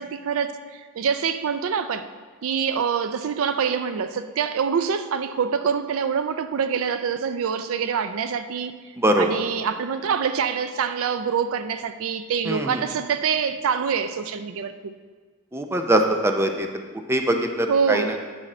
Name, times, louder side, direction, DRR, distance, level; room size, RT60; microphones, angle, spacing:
voice 1, 0.0-2.0 2.4-8.7 9.2-14.9 17.7-18.2, right 6 dB, 65° right, 10 dB, 0.4 m, -25 dB
voice 2, 9.0-9.3 12.5-12.8 15.5-16.7 17.1-18.0, right 1 dB, 10° right, 4 dB, 0.5 m, -22 dB
9.9 x 6.4 x 4.2 m, 1.5 s
head